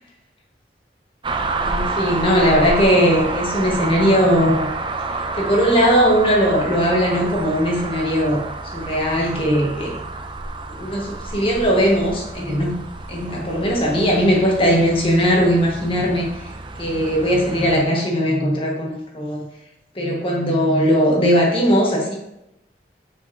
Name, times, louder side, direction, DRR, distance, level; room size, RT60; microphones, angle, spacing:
sound 1, 1.2-17.8, right 3 dB, 25° right, 0.5 m, -29 dB
voice 1, 1.6-4.7 5.3-10.0 10.7-12.7 13.1-16.3 16.8-19.4 19.9-22.2, equal, 30° left, -1 dB, 1.4 m, -19 dB
7.3 x 6.5 x 2.7 m, 0.87 s
head